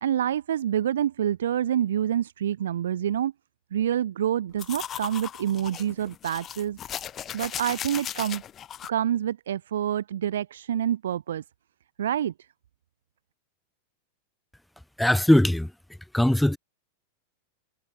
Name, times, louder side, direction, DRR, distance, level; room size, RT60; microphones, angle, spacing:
voice 1, 0.0-3.3 3.7-6.8 7.3-8.4 8.9-11.4 12.0-12.3, right 10 dB, 60° right, 0.4 m, -27 dB
sound 1, 4.6-8.9, left 10 dB, 30° left, 3.7 m, -37 dB
voice 2, 15.0-15.7 16.1-16.6, left 1 dB, 5° left, 0.4 m, -20 dB
figure-of-eight pair, 90°, 0 cm